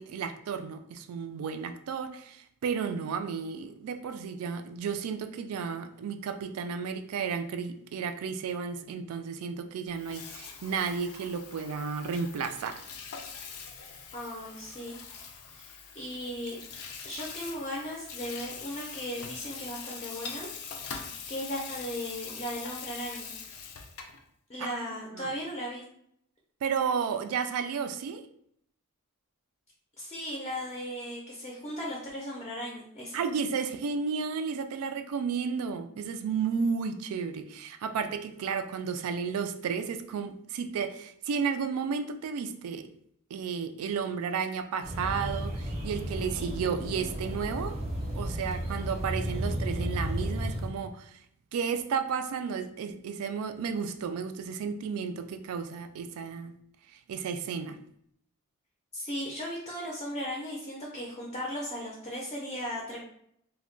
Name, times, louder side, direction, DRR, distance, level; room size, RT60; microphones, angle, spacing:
voice 1, 0.0-12.8 24.6-25.3 26.6-28.3 33.1-42.9 43.3-47.8 48.1-51.2 51.5-56.5 56.9-57.8, right 6 dB, 90° right, 10 dB, 0.3 m, -33 dB
Water tap faucet / Sink (filling or washing), 9.9-24.2, left 6 dB, 90° left, 0.4 m, -43 dB
voice 2, 14.1-15.0 15.5-16.6 17.0-21.0 21.3-23.3 24.5-25.8 30.0-33.2 58.9-63.0, equal, 30° left, -2 dB, 0.4 m, -37 dB
sound 1, 44.8-50.7, equal, 30° right, 0.5 m, -33 dB
2.2 x 2.1 x 3.7 m, 0.71 s
head